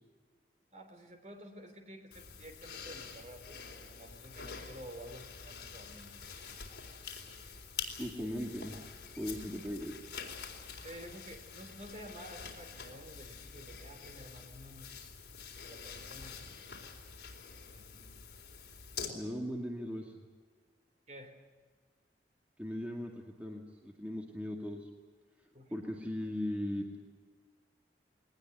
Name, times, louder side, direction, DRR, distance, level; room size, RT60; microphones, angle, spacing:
voice 1, 0.7-3.6 3.9-6.6 10.8-15.1 15.6-16.8 17.7-18.1 21.1-21.4 25.5-25.8, equal, 40° right, 6 dB, 3.5 m, -51 dB
sound 1, 2.1-19.1, left 6 dB, 65° left, 4.1 m, -47 dB
voice 2, 8.0-10.0 19.1-20.1 22.6-23.1 23.4-24.9 25.7-26.9, equal, 10° right, 0 dB, 2.2 m, -38 dB
21.5 x 19.0 x 9.4 m, 1.5 s
head